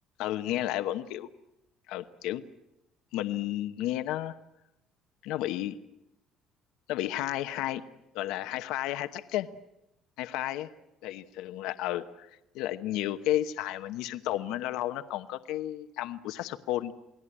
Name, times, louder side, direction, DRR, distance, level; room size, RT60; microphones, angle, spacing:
voice 1, 0.2-1.3 1.9-2.4 3.1-4.3 5.2-5.8 6.9-7.8 8.1-9.5 10.2-10.7 11.0-16.9, left 13 dB, 75° left, 9 dB, 0.9 m, -32 dB
28.5 x 20.0 x 10.0 m, 0.91 s
cardioid pair, 180°, 0 cm